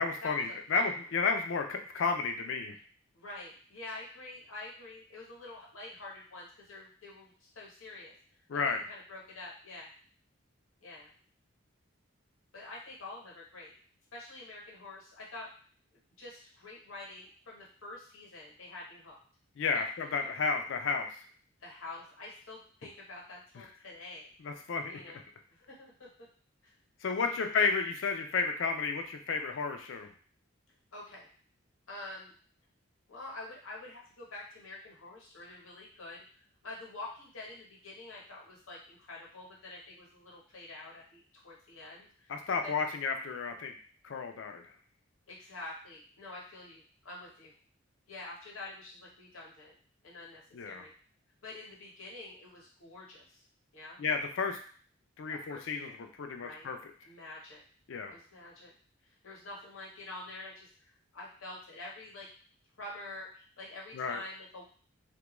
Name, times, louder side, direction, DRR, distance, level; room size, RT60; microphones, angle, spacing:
voice 1, 0.0-2.8 8.5-8.8 19.6-21.1 24.4-25.0 27.0-30.1 42.3-43.8 44.0-44.6 50.5-50.9 54.0-54.6 55.2-56.8 57.9-58.1 63.9-64.2, left 4 dB, 70° left, 5 dB, 0.4 m, -32 dB
voice 2, 3.1-8.1 8.7-9.9 10.8-11.1 12.5-13.7 14.1-15.5 15.9-19.2 19.7-20.3 21.6-24.3 24.8-25.2 25.5-26.1 26.6-26.7 27.2-27.6 30.9-31.3 31.9-32.3 33.1-36.2 36.6-42.3 42.6-42.7 45.3-47.5 48.1-49.8 50.0-50.9 51.4-53.4 53.7-54.0 55.3-56.0 56.4-56.7 57.0-57.6 58.1-58.7 59.0-62.3 62.8-64.6, left 2 dB, 90° left, -4 dB, 0.9 m, -47 dB
2.3 x 2.2 x 3.0 m, 0.43 s
head